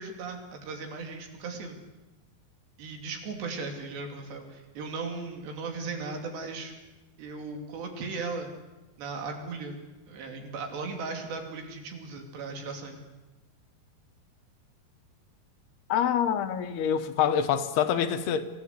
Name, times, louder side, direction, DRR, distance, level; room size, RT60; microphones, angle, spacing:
voice 1, 0.0-1.8 2.8-6.7 7.2-8.5 9.0-9.8 10.1-13.0, right 4 dB, 85° right, 5.1 m, -37 dB
voice 2, 15.9-18.4, left 8 dB, 75° left, 3.1 m, -26 dB
26.0 x 16.0 x 8.3 m
omnidirectional pair, 4.8 m